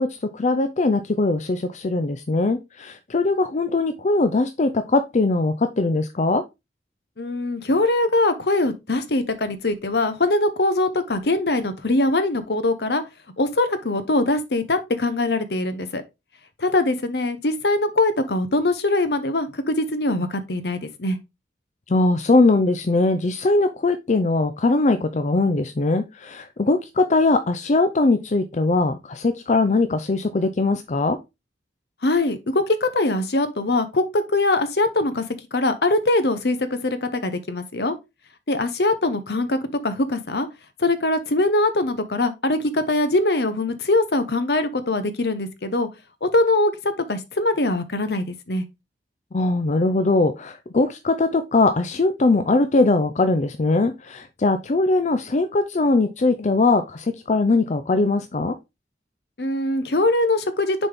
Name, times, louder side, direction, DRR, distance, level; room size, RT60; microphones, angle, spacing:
voice 1, 0.0-6.4 21.9-31.2 49.3-58.6, left 3 dB, 40° left, 0.5 m, -21 dB
voice 2, 7.2-13.0 13.4-16.0 16.6-21.2 32.0-35.2 35.5-37.9 38.5-39.6 39.8-40.5 40.8-45.9 46.2-48.6 59.4-60.9, left 2 dB, 65° left, 0.9 m, -22 dB
6.8 x 4.2 x 3.5 m
head